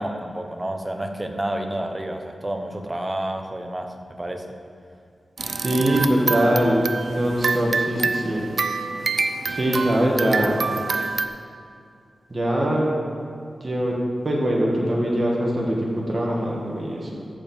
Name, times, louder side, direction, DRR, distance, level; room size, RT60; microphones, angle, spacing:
voice 1, 0.0-4.5, right 1 dB, 20° right, 4 dB, 0.9 m, -30 dB
sound 1, 5.4-11.3, right 4 dB, 60° right, 0.5 m, -26 dB
voice 2, 5.6-8.5 9.5-10.7 12.3-12.9 13.6-14.0 14.2-17.1, right 1 dB, 35° right, -3 dB, 1.8 m, -22 dB
14.0 x 4.7 x 7.1 m, 2.4 s
wide cardioid pair, 130°, 0 cm